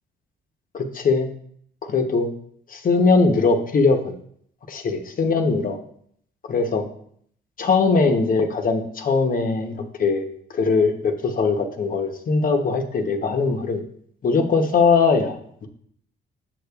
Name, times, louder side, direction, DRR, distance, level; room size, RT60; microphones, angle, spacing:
voice 1, 0.7-1.3 1.9-2.3 2.7-4.1 4.7-5.8 6.5-6.8 7.6-10.3 10.5-13.8 14.2-15.7, left 4 dB, 45° left, 4 dB, 0.8 m, -20 dB
7.6 x 6.6 x 2.3 m, 0.65 s
cardioid pair, 90°, 20 cm